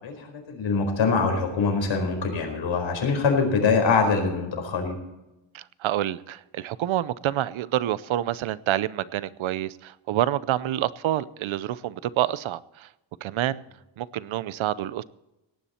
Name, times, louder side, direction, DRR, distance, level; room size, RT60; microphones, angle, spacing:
voice 1, 0.0-4.9, left 4 dB, 75° left, 3 dB, 4.6 m, -24 dB
voice 2, 5.5-12.9 13.2-13.6 14.0-15.0, right 13 dB, 85° right, 18 dB, 0.7 m, -27 dB
18.0 x 10.0 x 4.3 m, 0.96 s
wide cardioid pair, 150°, 46 cm